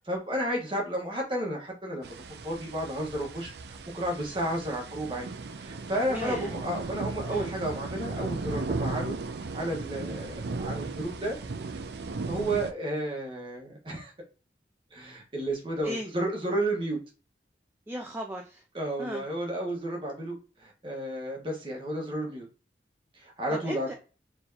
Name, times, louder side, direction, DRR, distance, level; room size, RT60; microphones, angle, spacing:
voice 1, 0.0-2.1 2.4-5.3 5.6-9.2 9.5-11.3 11.7-11.8 12.3-14.1 14.9-17.0 18.7-22.5 23.1-23.9, right 1 dB, 30° right, -1 dB, 1.3 m, -32 dB
sound 1, 2.0-12.7, right 3 dB, 70° right, 0.5 m, -36 dB
voice 2, 6.1-6.5 7.3-7.5 15.8-16.1 17.9-18.6 19.0-19.2 23.5-23.9, equal, 10° right, 2 dB, 0.4 m, -36 dB
4.4 x 3.4 x 2.8 m, 0.36 s
head